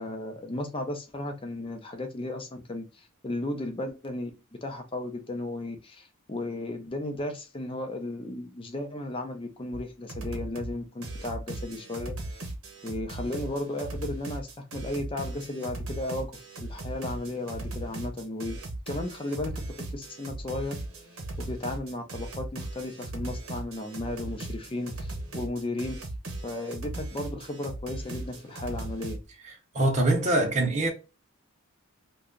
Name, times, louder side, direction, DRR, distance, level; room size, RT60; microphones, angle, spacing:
voice 1, 0.0-4.3 4.6-12.5 12.8-18.6 18.9-19.6 19.9-20.7 21.4-26.0 26.4-29.2, left 2 dB, 25° left, 0.6 m, -35 dB
sound 1, 9.7-9.8 10.1-10.7 11.0-29.2, right 2 dB, 65° right, 1.0 m, -38 dB
voice 2, 29.7-30.9, right 2 dB, 35° right, 0.7 m, -23 dB
2.8 x 2.3 x 3.7 m
head